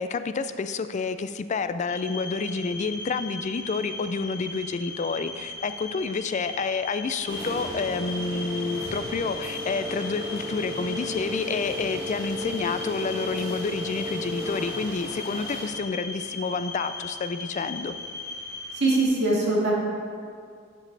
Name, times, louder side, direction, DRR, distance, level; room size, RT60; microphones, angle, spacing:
voice 1, 0.0-17.9, left 4 dB, 35° left, 11 dB, 0.4 m, -29 dB
sound 1, 1.9-19.1, left 3 dB, 55° left, 1.3 m, -38 dB
sound 2, 7.3-15.7, equal, 20° right, 2.2 m, -35 dB
voice 2, 18.7-19.7, right 2 dB, 60° right, -6 dB, 2.2 m, -22 dB
11.5 x 7.4 x 3.3 m, 2.2 s
head